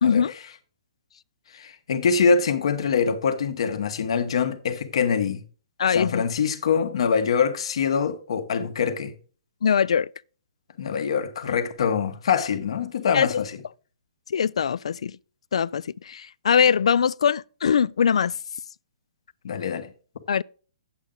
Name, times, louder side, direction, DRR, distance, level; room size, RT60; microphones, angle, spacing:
voice 1, 0.0-0.3 5.8-6.2 9.6-10.1 13.1-13.4 14.3-15.1 15.5-18.3 20.3-20.4, left 7 dB, 80° left, 0.3 m, -22 dB
voice 2, 1.5-5.4 5.9-9.1 10.8-13.5 19.4-19.9, left 6 dB, 65° left, 1.3 m, -24 dB
8.9 x 8.2 x 3.8 m
hypercardioid pair, 165°, 3 cm